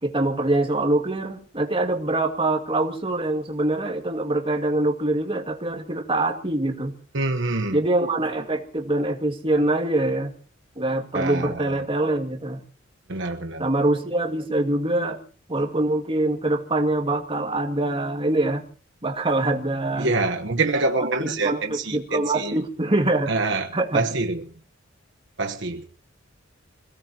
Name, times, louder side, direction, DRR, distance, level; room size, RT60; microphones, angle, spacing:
voice 1, 0.0-7.0 7.7-10.3 10.8-12.6 13.6-15.2 15.5-18.6 19.0-20.1 21.2-23.3 23.7-24.0, right 2 dB, 25° right, 2.2 m, -24 dB
voice 2, 7.1-7.8 11.1-11.8 13.1-13.7 20.0-22.6 23.3-24.4 25.4-25.9, right 3 dB, 65° right, 1.2 m, -26 dB
26.5 x 17.5 x 3.0 m
head